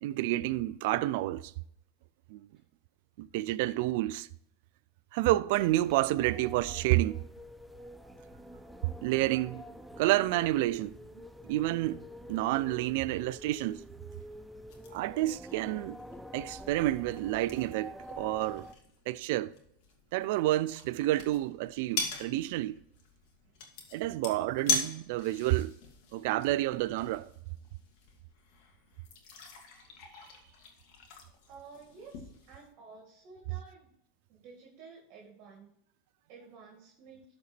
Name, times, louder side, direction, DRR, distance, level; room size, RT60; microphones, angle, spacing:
voice 1, 0.0-1.5 2.3-2.5 3.2-4.3 5.1-7.2 9.0-9.7 10.0-13.8 14.9-16.0 16.3-18.7 19.1-19.5 20.1-22.8 23.9-25.7 26.1-27.3, right 16 dB, 70° right, 0.4 m, -29 dB
sound 1, 5.5-18.7, equal, ahead, 0.5 m, -47 dB
sound 2, 14.7-32.7, left 4 dB, 65° left, 2.0 m, -41 dB
voice 2, 31.5-33.9 34.3-35.7 36.3-37.2, right 5 dB, 50° right, 2.0 m, -52 dB
12.5 x 4.2 x 4.4 m
supercardioid pair, 115°, 0 cm